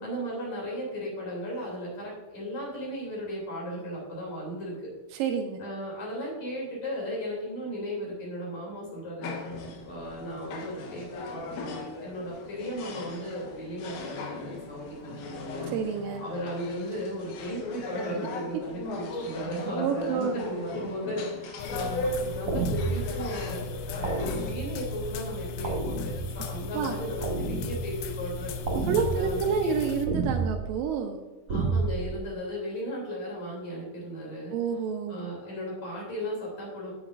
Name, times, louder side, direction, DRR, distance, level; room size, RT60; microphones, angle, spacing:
voice 1, 0.0-4.9 5.6-9.3 9.6-15.7 16.2-23.6 23.9-28.5 29.0-29.7 31.5-34.6 35.1-36.9, equal, 45° left, -3 dB, 3.9 m, -36 dB
voice 2, 5.1-5.6 15.7-16.2 19.8-20.4 26.7-26.9 28.8-31.2 34.5-35.3, right 6 dB, 85° right, 4 dB, 2.0 m, -29 dB
sound 1, 9.2-24.5, left 2 dB, 70° left, 2.7 m, -38 dB
sound 2, 21.6-30.0, left 4 dB, 85° left, 2.1 m, -37 dB
sound 3, 22.5-23.2 24.0-24.8 25.6-26.5 27.2-28.0 28.7-29.4 30.0-30.7 31.5-32.1, right 3 dB, 50° right, 1.9 m, -30 dB
9.3 x 9.1 x 2.5 m, 1.2 s
omnidirectional pair, 4.8 m